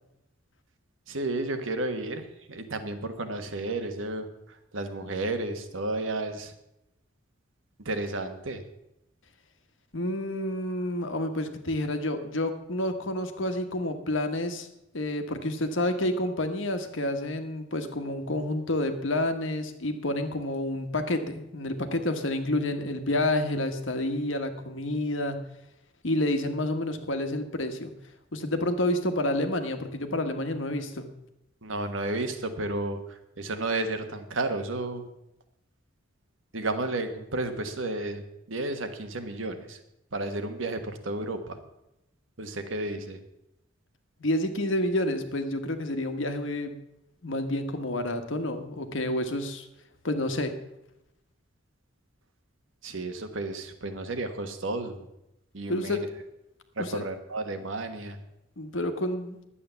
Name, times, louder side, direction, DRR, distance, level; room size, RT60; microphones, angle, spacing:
voice 1, 1.1-6.5 7.8-8.6 31.6-35.1 36.5-38.2 38.5-39.8 40.1-41.6 42.4-43.2 52.8-55.1 55.5-56.0 56.8-58.2, right 2 dB, 85° right, 7 dB, 1.4 m, -32 dB
voice 2, 9.9-14.7 14.9-25.4 26.0-27.9 28.3-31.1 44.2-46.7 47.2-49.7 50.0-50.5 55.7-56.0 56.8-57.1 58.6-59.4, left 1 dB, 75° left, 7 dB, 1.4 m, -29 dB
11.5 x 8.6 x 7.0 m, 0.87 s
head